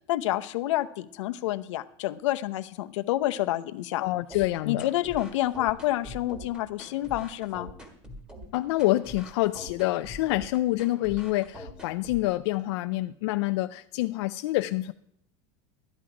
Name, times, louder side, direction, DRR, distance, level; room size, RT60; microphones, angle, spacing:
voice 1, 0.1-4.0 4.7-7.7, left 15 dB, 80° left, 10 dB, 0.8 m, -28 dB
voice 2, 4.0-4.9 8.5-14.9, left 18 dB, 60° left, 7 dB, 0.5 m, -27 dB
sound 1, 4.3-12.3, left 1 dB, 5° right, 1.6 m, -44 dB
12.5 x 10.5 x 4.9 m, 0.71 s
supercardioid pair, 175°, 15 cm